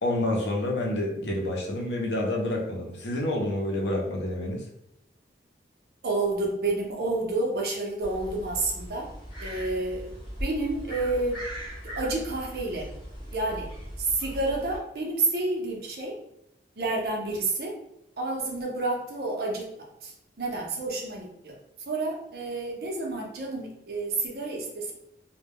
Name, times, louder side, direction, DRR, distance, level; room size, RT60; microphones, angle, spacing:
voice 1, 0.0-4.6, left 1 dB, 75° left, 0 dB, 0.6 m, -28 dB
voice 2, 6.0-9.1 9.4-10.1 10.4-11.4 12.0-12.9 13.3-13.7 14.0-16.1 16.8-17.7 18.2-19.7 20.0-21.6 21.9-24.9, right 2 dB, 60° right, 0 dB, 0.6 m, -29 dB
sound 1, 8.0-14.8, equal, 25° left, 0.9 m, -39 dB
2.2 x 2.1 x 3.4 m, 0.80 s
head